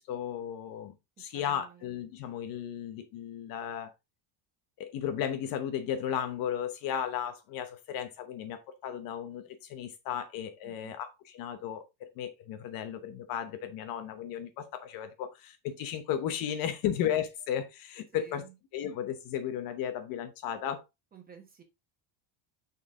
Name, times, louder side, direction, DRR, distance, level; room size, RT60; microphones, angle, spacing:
voice 1, 0.0-3.9 4.8-18.4 18.7-20.8, left 9 dB, 45° left, 0.9 m, -35 dB
voice 2, 1.2-1.9 10.6-11.0 18.1-18.5 21.1-21.6, right 8 dB, 20° right, 1.4 m, -53 dB
6.5 x 5.5 x 3.6 m
cardioid pair, 175°, 50 cm